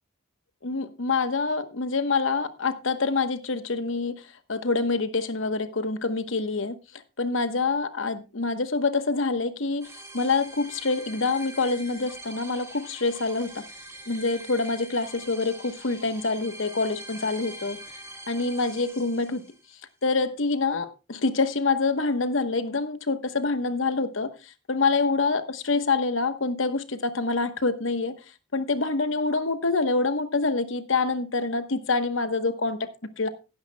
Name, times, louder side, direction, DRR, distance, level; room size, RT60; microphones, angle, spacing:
voice 1, 0.6-13.6 14.1-17.8 18.3-19.4 20.0-28.1 28.5-32.9 33.2-33.3, left 3 dB, 70° left, 1.1 m, -26 dB
sound 1, 9.8-19.7, right 1 dB, 15° right, 2.1 m, -44 dB
17.0 x 10.0 x 2.2 m
head